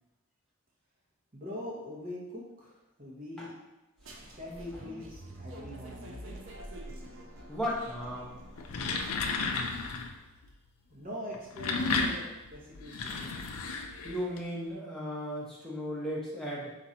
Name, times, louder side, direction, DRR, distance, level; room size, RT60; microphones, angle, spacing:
voice 1, 1.3-3.5 4.2-6.4 10.9-13.3, left 1 dB, 40° right, -5 dB, 1.0 m, -43 dB
sound 1, 4.0-9.6, right 1 dB, 60° right, 0.5 m, -46 dB
voice 2, 7.5-8.3 14.0-16.8, equal, ahead, -6 dB, 0.8 m, -35 dB
sound 2, 8.5-10.2 11.3-14.4, left 4 dB, 80° left, 0.4 m, -33 dB
3.8 x 2.6 x 4.2 m, 0.98 s
head